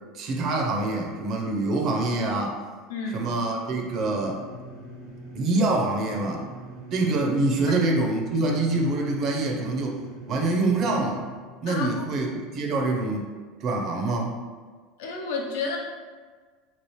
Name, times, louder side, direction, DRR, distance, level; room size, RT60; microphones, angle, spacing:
voice 1, 0.1-2.6 3.1-4.4 5.3-6.4 6.9-10.0 10.3-11.2 11.6-13.3 13.6-14.4, right 2 dB, 50° right, 1 dB, 0.6 m, -25 dB
voice 2, 2.9-3.4 11.7-11.9 12.7-12.8 15.0-15.8, left 4 dB, 85° left, -1 dB, 0.6 m, -31 dB
sound 1, 3.8-11.4, right 2 dB, 85° right, 1.3 m, -42 dB
3.0 x 2.4 x 3.1 m, 1.5 s
supercardioid pair, 105°, 0 cm